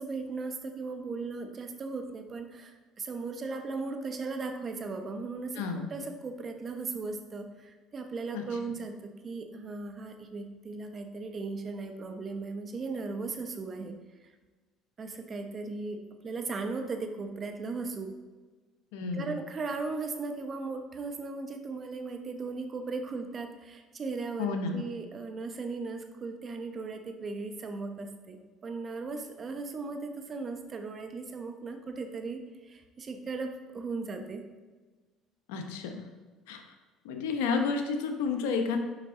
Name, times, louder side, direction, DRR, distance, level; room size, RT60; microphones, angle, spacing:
voice 1, 0.0-5.6 5.9-14.0 15.0-18.1 19.1-34.4, right 3 dB, 35° right, 6 dB, 1.0 m, -37 dB
voice 2, 5.5-5.9 8.3-8.4 18.9-19.4 24.4-24.8 35.5-36.0 36.5-36.6 37.0-38.8, left 5 dB, 85° left, 5 dB, 0.9 m, -31 dB
7.4 x 5.2 x 3.8 m, 1.3 s
supercardioid pair, 85°, 0 cm